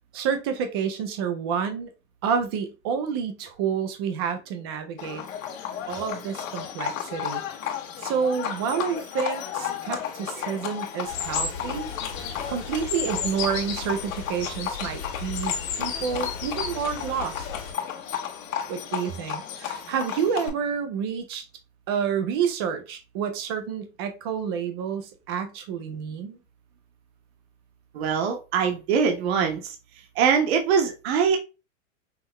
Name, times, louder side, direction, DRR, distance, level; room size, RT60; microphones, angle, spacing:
voice 1, 0.1-1.9 2.2-5.2 5.9-7.4 8.0-11.9 12.5-17.5 18.7-21.4 21.9-26.4, right 7 dB, 20° right, 0.3 m, -29 dB
Livestock farm animals working animals, 5.0-20.5, left 9 dB, 75° left, 1.3 m, -34 dB
sound 1, 11.1-17.7, left 6 dB, 55° left, 1.6 m, -33 dB
voice 2, 27.9-29.8 30.2-31.4, right 6 dB, 50° right, 1.0 m, -23 dB
5.7 x 2.0 x 2.9 m
supercardioid pair, 150°, 40 cm